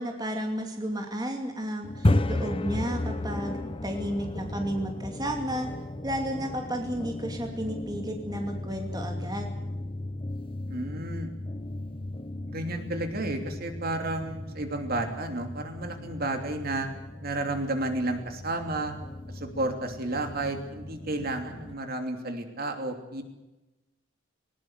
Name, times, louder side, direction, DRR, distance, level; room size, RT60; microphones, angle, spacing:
voice 1, 0.0-3.6 3.8-5.7 6.0-9.5, equal, 20° right, 3 dB, 2.6 m, -32 dB
sound 1, 1.8-21.7, left 1 dB, 25° left, 0.9 m, -34 dB
voice 2, 10.7-11.3 12.5-16.9 17.2-18.9 19.3-23.2, right 2 dB, 50° right, 5 dB, 3.0 m, -32 dB
20.0 x 20.0 x 8.1 m, 1.0 s
head